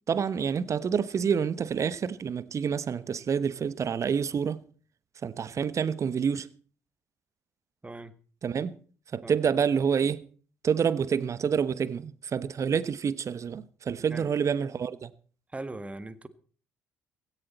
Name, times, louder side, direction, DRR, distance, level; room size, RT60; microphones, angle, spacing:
voice 1, 0.1-4.6 5.2-6.5 8.4-8.8 9.1-10.3 10.6-15.1, right 7 dB, 40° right, 1.1 m, -28 dB
voice 2, 15.5-16.3, right 2 dB, 15° right, 1.7 m, -39 dB
16.5 x 14.5 x 4.2 m
figure-of-eight pair, 50°, 8 cm